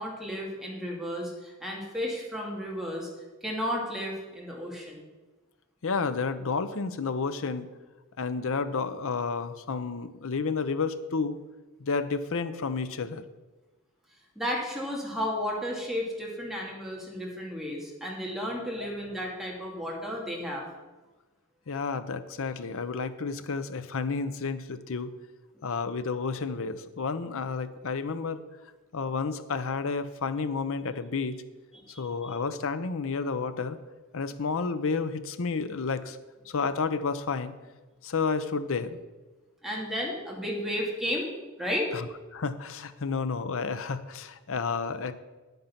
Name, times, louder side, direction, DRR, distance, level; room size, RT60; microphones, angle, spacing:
voice 1, 0.0-3.1 3.4-5.0 14.4-20.6 31.7-32.4 39.6-41.3 41.6-41.9, equal, ahead, -3 dB, 2.4 m, -33 dB
voice 2, 5.8-7.7 8.2-11.4 11.8-13.2 18.8-18.9 21.7-25.1 25.6-28.4 28.9-31.4 32.0-33.8 34.1-36.2 36.5-37.5 38.0-39.0 41.9-42.1 42.3-45.1, left 4 dB, 65° left, 12 dB, 0.7 m, -31 dB
9.3 x 9.2 x 5.8 m, 1.2 s
head